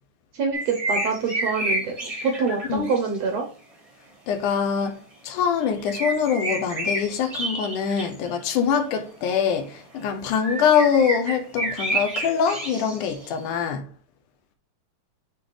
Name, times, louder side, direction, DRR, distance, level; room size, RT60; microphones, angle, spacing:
voice 1, 0.3-3.4, right 4 dB, 70° right, 1.7 m, -26 dB
sound 1, 0.5-3.2 5.6-8.5 9.3-9.6 10.3-13.7, right 1 dB, 25° right, 0.7 m, -30 dB
voice 2, 4.3-13.9, left 7 dB, 80° left, 2.2 m, -24 dB
8.3 x 3.7 x 3.2 m
omnidirectional pair, 3.8 m